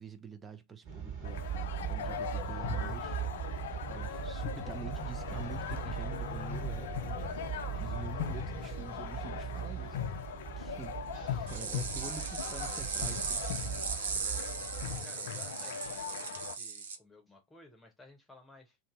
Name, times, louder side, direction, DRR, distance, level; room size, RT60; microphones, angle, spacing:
voice 1, 0.0-1.5 1.9-3.2 3.9-7.3 7.7-10.0 10.6-11.0 11.5-13.5, right 6 dB, 20° right, 0.4 m, -46 dB
sound 1, 0.8-15.0, right 8 dB, 40° right, 1.6 m, -40 dB
sound 2, 1.2-16.5, left 9 dB, 55° left, 0.4 m, -40 dB
sound 3, 11.5-17.0, right 6 dB, 60° right, 0.6 m, -38 dB
voice 2, 14.1-14.5 15.0-18.8, left 2 dB, 10° left, 0.9 m, -56 dB
2.6 x 2.6 x 3.7 m
figure-of-eight pair, 90°, 0 cm